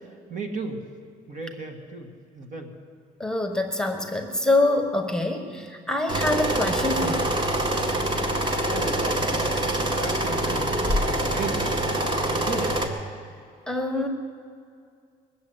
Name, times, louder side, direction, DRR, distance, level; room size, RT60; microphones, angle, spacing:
voice 1, 0.0-0.8 1.3-2.7 8.7-9.3 9.7-11.7 12.3-12.9, right 3 dB, 50° right, 4 dB, 2.0 m, -35 dB
voice 2, 3.2-7.3 13.7-14.1, left 2 dB, 5° left, 4 dB, 1.4 m, -25 dB
sound 1, 6.1-12.9, right 1 dB, 25° right, 1.7 m, -25 dB
20.5 x 7.5 x 7.9 m, 2.3 s
cardioid pair, 110°, 17 cm